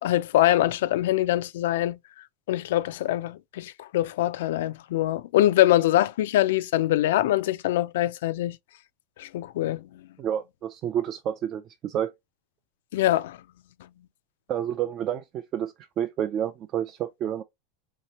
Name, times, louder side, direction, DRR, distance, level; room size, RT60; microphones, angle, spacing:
voice 1, 0.0-2.0 2.5-8.6 9.2-9.8 12.9-13.4, left 14 dB, 75° left, 0.3 m, -23 dB
voice 2, 10.2-12.1 14.5-17.4, right 10 dB, 30° right, 0.3 m, -29 dB
3.2 x 2.9 x 2.9 m
supercardioid pair, 160°, 0 cm